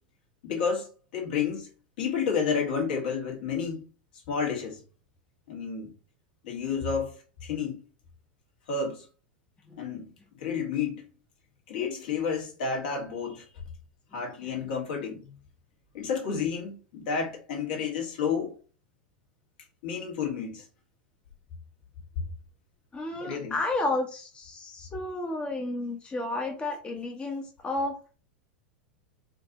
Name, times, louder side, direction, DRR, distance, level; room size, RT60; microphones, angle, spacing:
voice 1, 0.4-1.7 2.0-3.8 4.3-4.8 5.5-5.9 6.4-7.8 8.7-9.1 9.8-10.1 10.4-11.0 11.7-13.5 14.1-15.2 15.9-18.5 19.8-20.7 23.2-23.6, left 6 dB, 65° left, 1.9 m, -30 dB
voice 2, 22.9-28.0, left 2 dB, 20° left, 0.9 m, -32 dB
4.4 x 2.7 x 3.9 m
hypercardioid pair, 90°, 5 cm